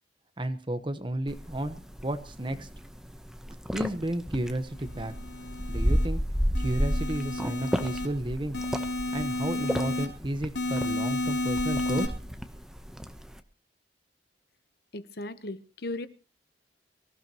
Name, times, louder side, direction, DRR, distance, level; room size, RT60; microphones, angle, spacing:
voice 1, 0.4-1.8 2.0-2.7 3.7-5.1 5.7-6.2 6.6-8.6 9.1-12.1, right 1 dB, 30° right, 9 dB, 1.1 m, -32 dB
sound 1, 1.3-13.4, equal, 5° right, 0.9 m, -33 dB
sound 2, 4.9-6.1 6.6-8.1 8.5-10.1 10.6-12.1, left 2 dB, 85° left, 3.0 m, -31 dB
voice 2, 14.9-16.1, left 2 dB, 60° left, 13 dB, 1.0 m, -36 dB
24.0 x 15.5 x 3.0 m, 0.33 s
head